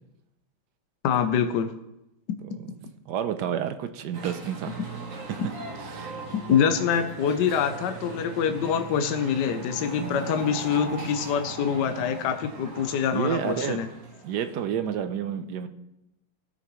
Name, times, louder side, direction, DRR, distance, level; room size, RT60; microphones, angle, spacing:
voice 1, 1.0-1.7 6.5-13.9, left 7 dB, 65° left, 7 dB, 1.3 m, -25 dB
voice 2, 2.4-4.8 5.3-5.4 5.8-6.1 10.0-10.2 13.1-13.8 14.2-15.7, right 9 dB, 70° right, 9 dB, 1.2 m, -30 dB
sound 1, 4.1-14.7, right 4 dB, 45° right, 1.5 m, -39 dB
17.5 x 6.6 x 3.1 m, 0.89 s
omnidirectional pair, 2.1 m